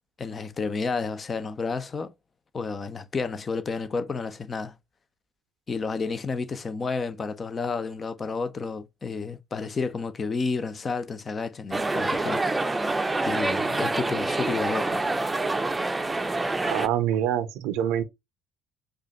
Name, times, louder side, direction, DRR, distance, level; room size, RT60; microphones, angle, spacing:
voice 1, 0.2-2.1 2.5-4.7 5.7-12.7 13.2-15.1, left 4 dB, 35° left, 0.7 m, -31 dB
sound 1, 11.7-16.9, right 2 dB, 20° right, 0.6 m, -26 dB
voice 2, 16.6-18.0, right 10 dB, 65° right, 0.6 m, -25 dB
4.9 x 2.5 x 4.0 m
figure-of-eight pair, 50°, 0 cm